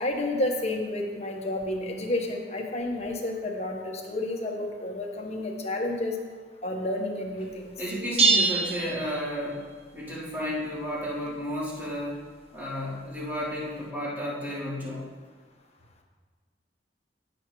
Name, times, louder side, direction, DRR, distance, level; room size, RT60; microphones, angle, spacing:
voice 1, 0.0-6.1 6.6-7.7, left 1 dB, 40° left, 1 dB, 1.3 m, -30 dB
voice 2, 7.8-9.6 9.9-12.2 12.5-15.0, equal, 10° right, -9 dB, 3.3 m, -32 dB
sound 1, 8.2-9.8, right 4 dB, 35° right, 0.7 m, -24 dB
16.5 x 7.2 x 3.2 m, 1.5 s
head